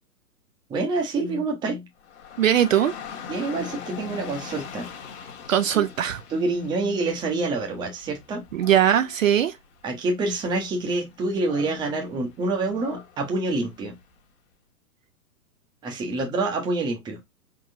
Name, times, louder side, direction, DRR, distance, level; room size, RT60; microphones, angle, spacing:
voice 1, 0.7-1.8 3.3-4.9 5.7-5.9 6.3-8.4 9.8-13.9 15.8-17.2, right 2 dB, 10° right, 0.8 m, -27 dB
Dog / Rain, 2.0-14.2, left 7 dB, 45° left, 1.3 m, -43 dB
voice 2, 2.4-2.9 5.5-6.2 8.5-9.6, right 10 dB, 55° right, 0.6 m, -20 dB
4.6 x 3.8 x 2.7 m
figure-of-eight pair, 120°, 48 cm